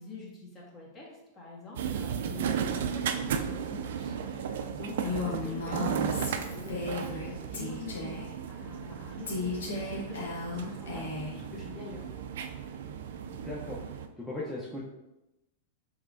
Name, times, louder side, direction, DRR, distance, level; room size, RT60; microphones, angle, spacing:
voice 1, 0.0-12.3, left 3 dB, 30° left, -4 dB, 1.5 m, -46 dB
sound 1, 1.8-14.1, right 7 dB, 70° right, 0.3 m, -35 dB
Female speech woman speaking, 5.0-7.3 7.5-8.3 9.3-11.4, left 3 dB, 80° left, 1.0 m, -35 dB
voice 2, 5.2-5.5 10.9-11.1 13.3-13.8 14.2-14.8, left 2 dB, 5° left, -6 dB, 0.7 m, -38 dB
4.7 x 3.2 x 2.6 m, 0.96 s
hypercardioid pair, 110°, 0 cm